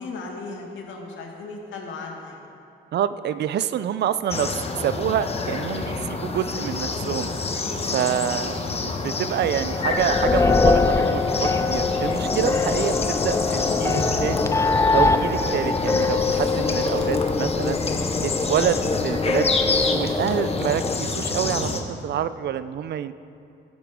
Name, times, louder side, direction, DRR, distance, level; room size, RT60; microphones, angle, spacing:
voice 1, 0.0-2.5 7.8-8.1, left 3 dB, 75° left, 0 dB, 1.9 m, -37 dB
voice 2, 2.9-7.6 7.9-14.5 14.9-17.8 18.2-23.1, right 10 dB, 60° right, 14 dB, 0.4 m, -27 dB
sound 1, 4.3-21.8, left 3 dB, 30° left, 1.1 m, -28 dB
sound 2, 9.6-20.9, left 3 dB, 15° left, 0.3 m, -23 dB
16.5 x 8.1 x 3.7 m, 2.6 s
cardioid pair, 90°, 20 cm